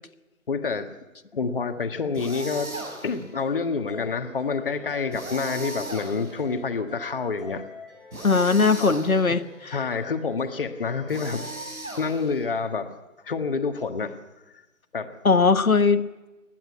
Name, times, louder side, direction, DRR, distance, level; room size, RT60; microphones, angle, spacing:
voice 1, 0.5-0.9 1.4-7.6 8.8-8.9 9.3-11.5 12.0-12.9 13.2-14.2 14.9-15.1, left 5 dB, 40° left, 7 dB, 1.6 m, -28 dB
sound 1, 2.1-3.3 5.1-6.6 8.1-9.4 11.1-12.5, right 2 dB, 80° right, 6.1 m, -37 dB
sound 2, 3.2-11.8, left 5 dB, ahead, 1.7 m, -47 dB
voice 2, 8.2-9.8 15.2-16.1, left 4 dB, 80° left, 10 dB, 1.4 m, -20 dB
29.5 x 11.0 x 9.6 m, 1.1 s
figure-of-eight pair, 155°, 42 cm